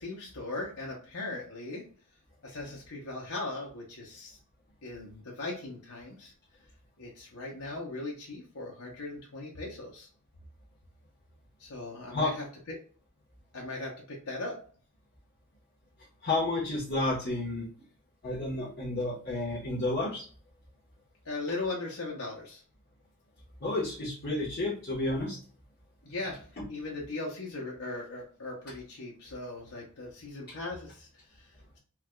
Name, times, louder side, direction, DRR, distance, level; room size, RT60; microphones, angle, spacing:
voice 1, 0.0-1.8 2.4-4.4 4.8-6.3 7.0-10.1 11.6-12.8 13.5-14.6 21.2-22.6 26.0-31.8, left 2 dB, 85° left, -2 dB, 0.8 m, -39 dB
voice 2, 16.2-17.7 18.2-20.2 23.6-25.4, left 2 dB, 45° left, -9 dB, 1.1 m, -31 dB
4.5 x 2.3 x 2.2 m, 0.42 s
head